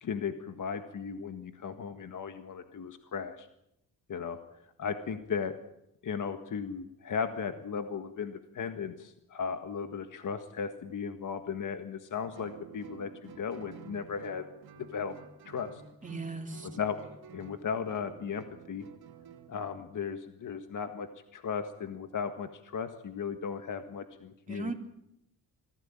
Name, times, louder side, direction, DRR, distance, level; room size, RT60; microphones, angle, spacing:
voice 1, 0.0-3.5 4.1-4.4 4.8-5.5 6.0-14.4 14.8-15.1 15.4-15.8 16.6-17.0 17.3-18.9 19.5-21.1 21.3-24.7, left 6 dB, 55° left, 8 dB, 1.7 m, -36 dB
Guitar, 12.3-19.8, right 7 dB, 80° right, 2.6 m, -51 dB
voice 2, 16.0-16.7 24.5-24.7, right 3 dB, 20° right, 2 dB, 3.3 m, -37 dB
24.5 x 16.5 x 8.8 m, 0.82 s
cardioid pair, 85°, 37 cm